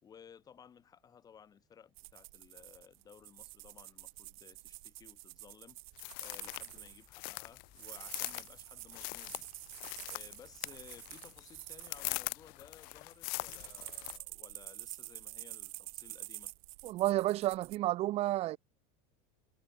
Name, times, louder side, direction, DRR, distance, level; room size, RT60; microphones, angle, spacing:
voice 1, 0.0-5.8 6.2-9.5 10.0-16.5, left 7 dB, 20° left, 4.4 m, -58 dB
sound 1, 2.0-7.1 7.7-12.3 12.9-17.8, right 24 dB, 65° right, 3.1 m, -49 dB
sound 2, 6.0-14.2, left 30 dB, 45° left, 1.6 m, -42 dB
voice 2, 16.8-18.6, right 16 dB, 30° right, 1.1 m, -31 dB
supercardioid pair, 170°, 20 cm